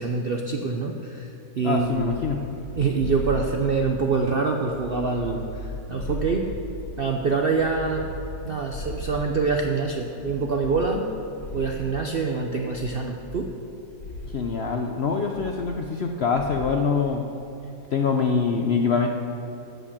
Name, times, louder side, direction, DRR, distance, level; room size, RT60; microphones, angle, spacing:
voice 1, 0.0-2.1 2.8-6.4 7.0-8.1 8.4-11.1 11.5-13.5, right 4 dB, 60° right, 2 dB, 0.6 m, -25 dB
voice 2, 1.6-2.4 14.3-17.2 17.9-19.1, left 5 dB, 65° left, 3 dB, 0.6 m, -24 dB
sound 1, 1.7-4.2 4.6-7.1 7.6-9.7 10.2-12.1 12.7-13.7 14.0-14.5 15.3-16.1 16.4-16.8, equal, 40° left, 2.4 m, -37 dB
14.5 x 5.5 x 7.2 m, 2.9 s
omnidirectional pair, 1.8 m